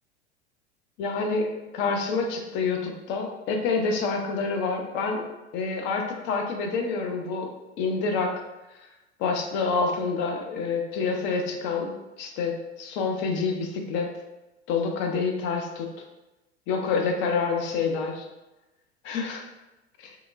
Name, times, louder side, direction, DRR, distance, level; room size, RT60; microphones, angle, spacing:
voice 1, 1.0-5.2 5.5-7.5 7.8-8.3 9.2-14.1 14.7-15.9 16.7-18.2 19.1-19.4 20.0-20.1, left 4 dB, 35° left, 3 dB, 0.5 m, -27 dB
3.5 x 2.9 x 2.5 m, 1.0 s
figure-of-eight pair, 85°, 34 cm